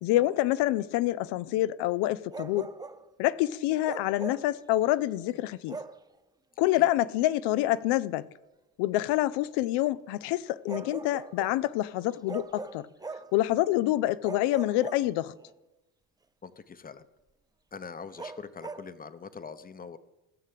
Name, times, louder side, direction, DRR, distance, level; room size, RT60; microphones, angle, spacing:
voice 1, 0.0-2.7 3.2-5.8 6.6-8.2 8.8-12.9 13.3-15.3, left 15 dB, 80° left, 0.6 m, -27 dB
Bark, 2.3-3.1 3.8-4.5 5.7-6.0 7.7-7.9 10.7-11.6 12.3-13.4 14.2-15.5 18.2-18.9, right 3 dB, 10° right, 0.5 m, -40 dB
voice 2, 16.4-17.1 17.7-20.0, left 5 dB, 20° left, 0.8 m, -43 dB
15.5 x 6.6 x 7.5 m
cardioid pair, 100°, 40 cm